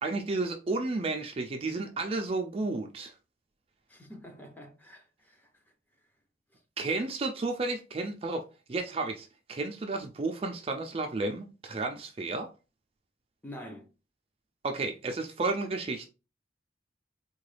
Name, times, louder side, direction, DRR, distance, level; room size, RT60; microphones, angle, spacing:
voice 1, 0.0-3.1 6.8-12.5 14.6-16.1, right 3 dB, 30° right, 0.3 m, -32 dB
voice 2, 3.9-5.5 13.4-13.9, equal, 10° left, 0.6 m, -46 dB
3.7 x 2.2 x 3.2 m
head